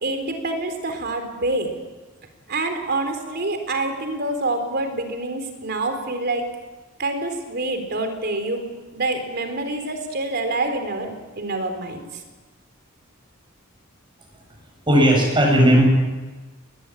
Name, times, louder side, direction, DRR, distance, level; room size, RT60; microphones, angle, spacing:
voice 1, 0.0-1.7 2.5-6.5 7.0-12.1, right 2 dB, 50° right, 6 dB, 3.9 m, -26 dB
voice 2, 14.9-15.8, equal, 25° right, 1 dB, 7.7 m, -15 dB
21.0 x 20.5 x 8.9 m, 1.3 s
head